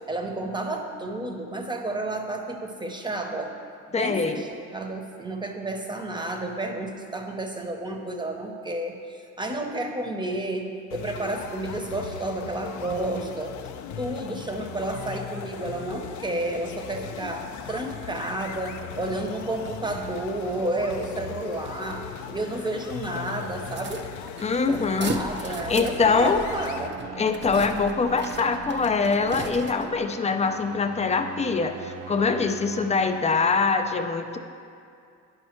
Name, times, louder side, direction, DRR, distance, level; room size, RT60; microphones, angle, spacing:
voice 1, 0.0-3.5 3.9-13.5 14.0-24.0 24.7-27.0, right 2 dB, 15° right, 3 dB, 0.9 m, -31 dB
voice 2, 3.9-4.4 24.4-25.2 25.7-26.4 27.2-34.4, left 4 dB, 20° left, 7 dB, 0.5 m, -23 dB
sound 1, 10.9-26.9, left 9 dB, 75° left, 0.5 m, -38 dB
sound 2, 23.7-30.0, right 4 dB, 40° right, 0.6 m, -38 dB
sound 3, 26.3-33.6, right 7 dB, 80° right, 0.6 m, -41 dB
9.6 x 5.3 x 4.4 m, 2.4 s
cardioid pair, 90°, 30 cm